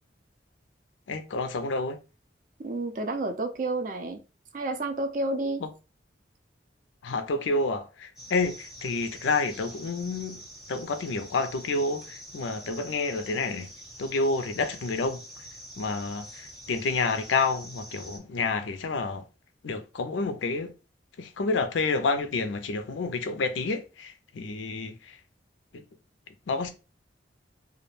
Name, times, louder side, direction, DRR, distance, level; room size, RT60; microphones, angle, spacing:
voice 1, 1.1-2.0 5.6-5.7 7.0-10.4 10.7-13.7 14.0-15.2 15.8-19.2 19.6-20.7 21.2-25.2 25.7-25.8 26.5-26.7, left 3 dB, 90° left, 0.5 m, -29 dB
voice 2, 2.6-4.2 4.5-5.6, right 2 dB, 45° right, 0.4 m, -30 dB
sound 1, 8.2-18.2, equal, ahead, 0.7 m, -46 dB
2.3 x 2.1 x 3.1 m
head